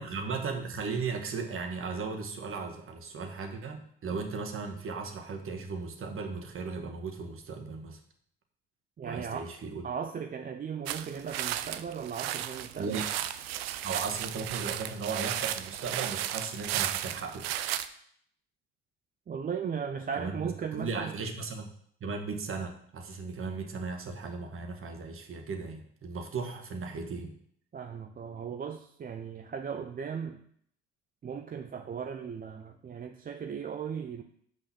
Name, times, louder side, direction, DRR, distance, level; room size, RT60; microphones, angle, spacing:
voice 1, 0.0-8.0 9.0-9.8 12.8-13.1 13.8-17.5 20.2-20.3 20.7-21.7 22.0-27.3, right 4 dB, 45° right, 4 dB, 1.6 m, -36 dB
voice 2, 9.0-9.5 9.8-13.0 19.3-21.2 27.7-30.4 31.2-34.2, right 7 dB, 30° right, 6 dB, 0.6 m, -37 dB
sound 1, 10.9-17.9, right 12 dB, 85° right, 0.5 m, -34 dB
6.0 x 5.3 x 5.9 m, 0.66 s
hypercardioid pair, 65°, 30 cm